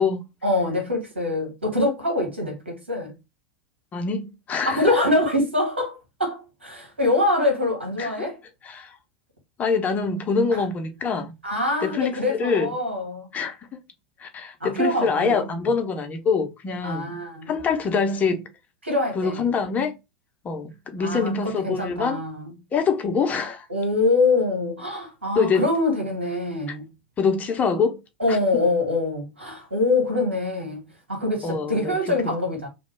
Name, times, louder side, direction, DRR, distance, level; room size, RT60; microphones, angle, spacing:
voice 1, 0.4-3.1 4.6-8.4 10.5-10.6 11.4-13.3 14.6-15.4 16.8-17.5 18.8-19.5 21.0-22.5 23.7-26.8 28.2-30.8 31.1-32.7, left 2 dB, 85° right, 1.5 m, -24 dB
voice 2, 3.9-5.0 8.0-8.3 8.6-8.9 9.6-11.3 11.8-12.7 13.3-13.6 14.2-17.2 17.5-18.5 19.1-20.0 20.4-22.2 22.7-23.7 25.3-25.7 26.7-26.8 27.2-28.0 28.3-28.4 31.4-32.3, left 5 dB, 25° left, 0.7 m, -25 dB
3.0 x 2.2 x 3.3 m
figure-of-eight pair, 90°, 6 cm